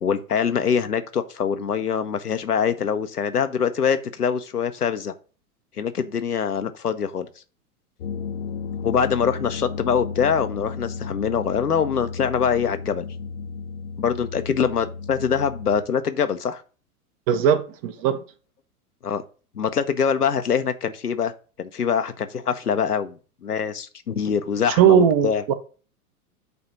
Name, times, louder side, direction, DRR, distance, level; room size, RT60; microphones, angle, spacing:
voice 1, 0.0-5.1 5.8-7.3 8.8-13.1 14.0-16.6 19.0-19.2 19.5-21.3 21.6-25.4, left 7 dB, 80° left, 0.8 m, -24 dB
sound 1, 8.0-15.8, left 5 dB, 50° left, 0.6 m, -33 dB
voice 2, 17.3-18.2 24.8-25.5, right 8 dB, 25° right, 0.5 m, -18 dB
7.9 x 2.8 x 5.7 m
figure-of-eight pair, 95°, 45 cm